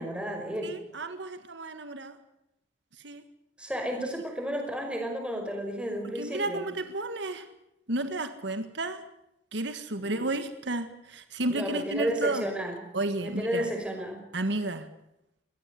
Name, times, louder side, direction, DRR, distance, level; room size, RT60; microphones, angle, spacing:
voice 1, 0.0-0.8 3.6-6.6 10.0-10.2 11.5-12.8 13.2-14.2, equal, 5° right, 3 dB, 5.2 m, -32 dB
voice 2, 0.6-2.2 3.0-3.2 6.1-7.5 7.9-9.0 9.5-12.5 12.9-13.7 14.3-14.9, right 2 dB, 70° right, 9 dB, 1.7 m, -32 dB
23.0 x 17.5 x 8.3 m, 0.84 s
head